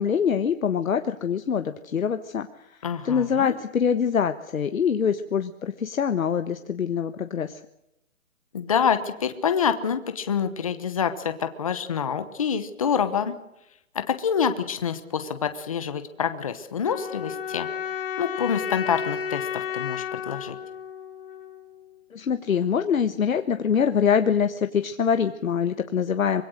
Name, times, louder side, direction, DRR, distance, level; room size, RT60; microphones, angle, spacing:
voice 1, 0.0-2.8 3.0-7.6 22.1-26.4, left 7 dB, 75° left, 9 dB, 1.3 m, -24 dB
voice 2, 2.8-3.5 8.5-13.3 13.9-17.7 18.2-20.6, left 7 dB, 25° left, 10 dB, 1.1 m, -27 dB
sound 1, 16.8-21.8, left 8 dB, 40° left, 2.8 m, -32 dB
24.5 x 22.0 x 6.4 m, 0.84 s
hypercardioid pair, 175°, 41 cm